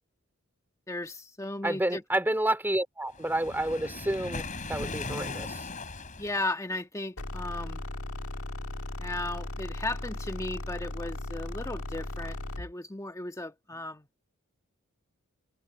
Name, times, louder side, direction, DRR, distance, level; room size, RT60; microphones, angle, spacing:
voice 1, 0.9-2.0 6.2-7.8 9.0-14.1, left 2 dB, 15° left, 1.6 m, -36 dB
voice 2, 1.6-5.7, right 1 dB, 10° right, 2.8 m, -30 dB
Waves surf, 3.1-6.5, left 3 dB, 35° left, 4.5 m, -38 dB
sound 1, 7.2-12.7, left 1 dB, 75° left, 1.7 m, -37 dB
head